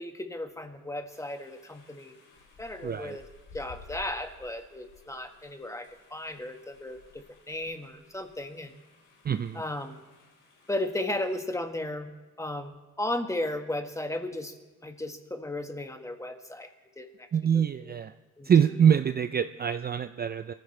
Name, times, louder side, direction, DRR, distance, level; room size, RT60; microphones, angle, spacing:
voice 1, 0.0-2.3 2.6-3.3 3.5-8.8 9.5-10.0 10.7-12.1 12.4-14.5 14.8-16.7 17.0-17.3 17.5-17.9 18.4-18.5, left 1 dB, 10° left, 5 dB, 1.5 m, -35 dB
sound 1, 1.1-11.4, left 4 dB, 80° left, 4.3 m, -55 dB
voice 2, 2.8-3.2 9.2-9.6 17.3-18.1 18.4-20.5, right 8 dB, 30° right, 10 dB, 0.5 m, -24 dB
23.0 x 15.0 x 3.3 m, 1.2 s
cardioid pair, 90°, 30 cm